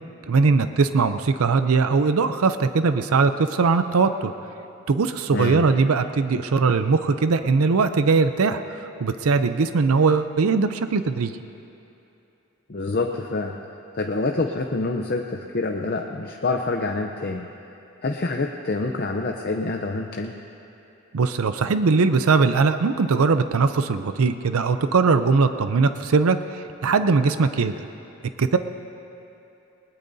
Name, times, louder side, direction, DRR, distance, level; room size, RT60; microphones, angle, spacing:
voice 1, 0.3-4.3 4.9-11.3 21.1-27.8 28.4-28.6, right 4 dB, 85° right, 10 dB, 0.5 m, -20 dB
voice 2, 5.3-5.6 12.7-13.6 13.9-17.5 18.0-20.3, left 3 dB, 45° left, 2 dB, 0.6 m, -26 dB
21.0 x 20.0 x 2.7 m, 2.9 s
head